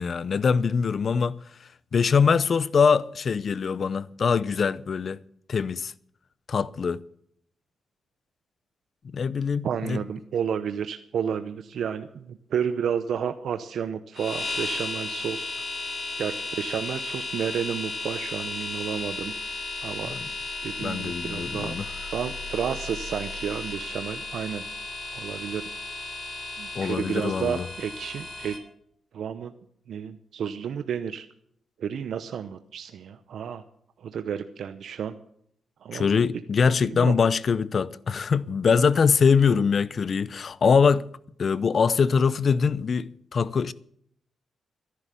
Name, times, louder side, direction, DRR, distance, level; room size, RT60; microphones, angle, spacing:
voice 1, 0.0-1.4 1.9-5.2 5.5-5.9 6.5-7.0 9.0-10.0 20.1-20.2 20.8-21.9 26.7-27.7 35.9-41.1 41.4-43.7, left 5 dB, 55° left, 0.6 m, -23 dB
voice 2, 9.6-15.7 16.2-19.3 19.8-20.2 20.6-21.8 22.1-24.6 25.1-25.6 26.6-28.6 29.1-29.5 29.9-31.3 31.8-33.6 34.0-35.2 35.8-36.1 36.9-37.2, right 8 dB, 75° right, 0.7 m, -31 dB
sound 1, 14.1-28.6, left 3 dB, 35° left, 3.2 m, -34 dB
13.5 x 11.0 x 6.9 m
cardioid pair, 85°, 0 cm